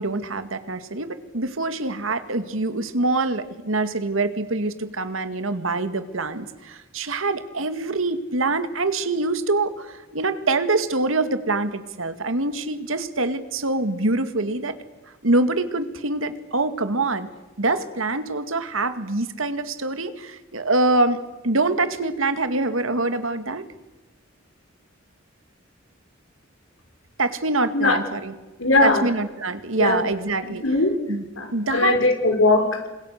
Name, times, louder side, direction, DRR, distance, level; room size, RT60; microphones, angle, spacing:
voice 1, 0.0-14.8 15.2-17.3 17.6-21.2 21.4-23.7 27.2-28.3 28.8-30.6 31.1-31.2 31.5-32.0, right 2 dB, 80° right, 10 dB, 2.2 m, -25 dB
voice 2, 28.6-29.1 29.8-30.0 30.6-31.0 31.4-32.9, left 2 dB, 75° left, 5 dB, 5.3 m, -20 dB
30.0 x 25.5 x 6.7 m, 1.1 s
head